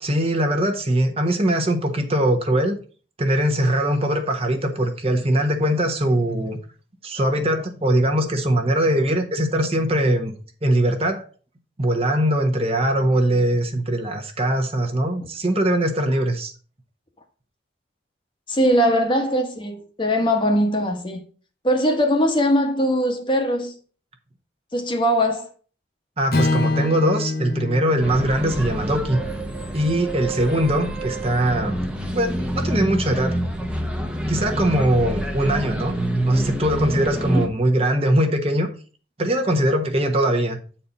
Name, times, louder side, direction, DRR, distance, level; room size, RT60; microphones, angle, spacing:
voice 1, 0.0-2.8 3.2-6.6 7.0-10.3 10.6-11.3 11.8-16.5 26.2-29.2 29.7-31.8 32.1-33.4 34.3-35.9 36.2-38.7 39.2-40.6, right 1 dB, 30° right, 1.1 m, -21 dB
voice 2, 18.5-21.2 21.6-23.7 24.7-25.5 37.2-37.4, equal, 25° left, 1.1 m, -21 dB
Strum, 26.3-30.6, left 2 dB, 55° left, 0.9 m, -27 dB
sound 1, 28.0-37.5, right 1 dB, 5° right, 0.8 m, -27 dB
8.4 x 4.4 x 5.4 m
head